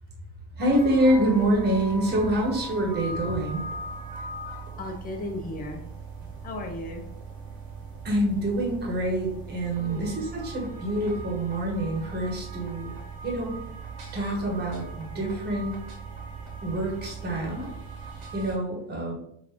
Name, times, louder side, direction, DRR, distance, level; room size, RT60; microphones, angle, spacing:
voice 1, 0.5-3.6 8.0-12.9 13.2-13.6 14.1-15.8 16.6-17.7 18.3-19.1, right 1 dB, 25° right, -1 dB, 1.1 m, -26 dB
sound 1, 0.6-18.5, right 4 dB, 60° right, 1.1 m, -39 dB
voice 2, 4.8-5.8 6.4-7.0 9.8-10.1, left 2 dB, 20° left, 2 dB, 0.6 m, -35 dB
3.8 x 2.5 x 2.9 m, 0.72 s
cardioid pair, 125°, 42 cm